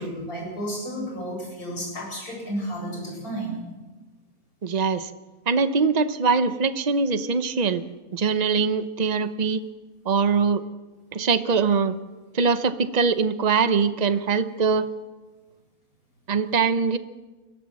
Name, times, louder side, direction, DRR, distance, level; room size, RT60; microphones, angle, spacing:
voice 1, 0.0-3.6, equal, 90° left, -2 dB, 8.3 m, -32 dB
voice 2, 4.6-5.1 5.5-7.8 8.1-9.6 10.0-10.6 11.1-12.0 12.3-14.9 16.3-17.0, right 5 dB, 35° right, 12 dB, 0.8 m, -22 dB
22.5 x 15.5 x 7.7 m, 1.2 s
omnidirectional pair, 1.5 m